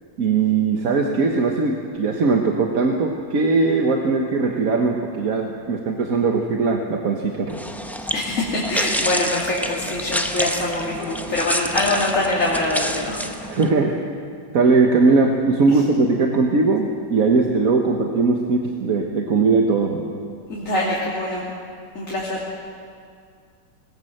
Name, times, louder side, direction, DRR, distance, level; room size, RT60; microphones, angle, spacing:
voice 1, 0.2-7.6 13.5-14.0 14.5-20.0, right 4 dB, 55° right, 2 dB, 1.6 m, -19 dB
sound 1, 7.5-13.7, equal, ahead, 0.6 m, -28 dB
voice 2, 8.1-13.2 15.7-15.8 20.5-21.4 21.9-22.5, left 2 dB, 45° left, -5 dB, 3.1 m, -24 dB
20.0 x 18.5 x 7.8 m, 2.3 s
omnidirectional pair, 2.0 m